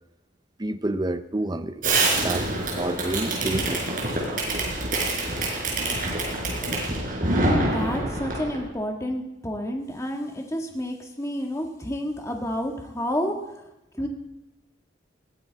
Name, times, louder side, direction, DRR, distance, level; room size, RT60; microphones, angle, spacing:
voice 1, 0.6-1.8 2.2-4.0, right 1 dB, 20° right, 11 dB, 0.6 m, -29 dB
Fireworks, 1.8-8.6, right 2 dB, 45° right, 4.5 m, -26 dB
voice 2, 7.3-13.3 14.0-14.1, equal, 15° left, 2 dB, 1.6 m, -29 dB
20.0 x 14.5 x 4.1 m, 0.90 s
head